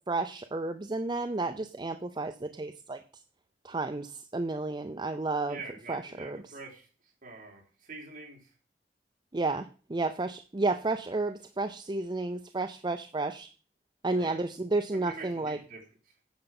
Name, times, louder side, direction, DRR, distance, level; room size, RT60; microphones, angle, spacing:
voice 1, 0.1-3.0 3.6-5.6 5.9-6.6 9.3-13.5 14.0-15.6, right 3 dB, 25° right, 8 dB, 0.5 m, -32 dB
voice 2, 5.5-6.9 7.2-8.4 14.1-14.4 14.9-15.8, right 3 dB, 50° right, -1 dB, 3.8 m, -45 dB
9.6 x 6.7 x 6.0 m, 0.38 s
head